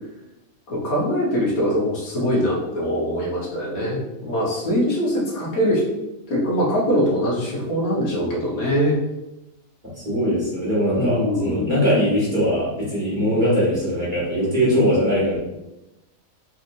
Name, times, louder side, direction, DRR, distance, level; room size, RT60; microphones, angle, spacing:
voice 1, 0.7-5.8 6.3-9.0 10.9-11.7, equal, 85° left, -5 dB, 1.6 m, -22 dB
voice 2, 10.0-15.4, equal, 35° right, -8 dB, 1.5 m, -21 dB
4.2 x 2.9 x 2.6 m, 0.95 s
omnidirectional pair, 1.4 m